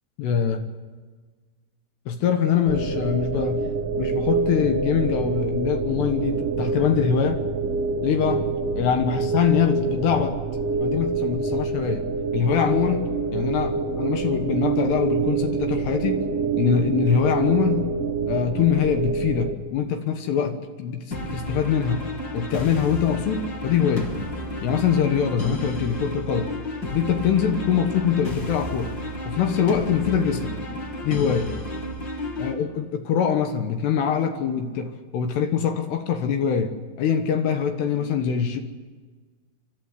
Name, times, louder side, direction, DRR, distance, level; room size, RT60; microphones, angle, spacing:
voice 1, 0.2-0.6 2.1-3.7 4.0-7.4 8.0-8.5 8.7-10.4 10.8-16.2 16.6-17.9 18.3-22.0 22.3-24.1 24.6-26.5 26.9-28.9 29.3-30.8 31.0-31.6 32.4-38.6, left 8 dB, 85° left, 6 dB, 3.4 m, -23 dB
sound 1, 2.7-19.5, right 4 dB, 90° right, 1.3 m, -26 dB
sound 2, 21.1-32.5, equal, 30° left, 2.2 m, -32 dB
29.0 x 12.5 x 9.7 m, 1.4 s
omnidirectional pair, 4.7 m